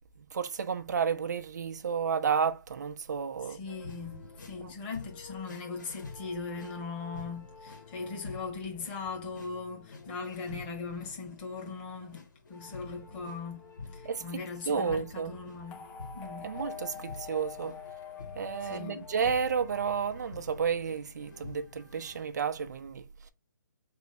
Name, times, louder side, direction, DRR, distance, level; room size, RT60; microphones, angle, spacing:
voice 1, 0.2-3.7 4.6-4.7 14.0-15.3 16.4-17.8 18.4-23.0, right 6 dB, 60° right, 0.8 m, -32 dB
voice 2, 3.4-12.2 12.5-13.7 13.9-15.9 16.1-16.5 18.6-19.1, left 4 dB, 30° left, 1.8 m, -39 dB
sound 1, 3.7-22.2, left 4 dB, 65° left, 2.0 m, -48 dB
sound 2, 15.7-19.9, left 7 dB, 10° left, 0.4 m, -45 dB
3.5 x 2.6 x 4.4 m
hypercardioid pair, 145°, 11 cm